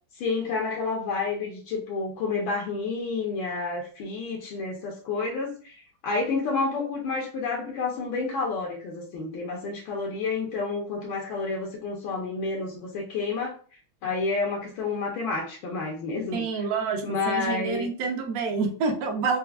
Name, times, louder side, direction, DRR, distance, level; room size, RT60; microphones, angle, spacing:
voice 1, 0.1-5.7 6.0-13.6 14.0-16.7 17.0-17.9, left 4 dB, 75° left, -1 dB, 1.4 m, -30 dB
voice 2, 16.3-19.4, right 4 dB, 65° right, 2 dB, 0.9 m, -28 dB
4.4 x 2.0 x 2.3 m, 0.42 s
omnidirectional pair, 2.3 m